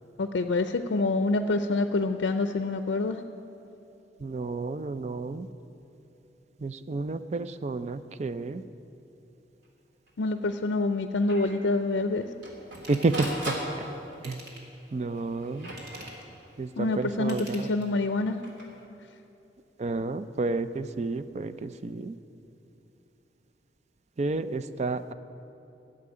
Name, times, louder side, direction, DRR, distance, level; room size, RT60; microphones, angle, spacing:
voice 1, 0.2-3.2 10.2-12.2 16.8-18.4, left 2 dB, 85° left, 8 dB, 0.5 m, -26 dB
voice 2, 4.2-5.5 6.6-8.6 12.9-13.6 14.2-14.4 14.9-15.7 16.6-17.7 19.8-22.2 24.2-25.1, right 3 dB, 40° right, 12 dB, 0.4 m, -30 dB
Printer, 9.6-9.7 10.1-10.2 10.5-10.6 11.3-11.5 12.1-14.3 15.1-16.6 18.2-18.7, right 1 dB, 80° right, 2.9 m, -37 dB
Ratchet pawl / Tools, 12.7-13.3 14.1-14.8 15.6-16.3 17.2-18.1 18.6-18.7, right 1 dB, 65° right, 2.4 m, -47 dB
12.0 x 7.7 x 9.9 m, 3.0 s
head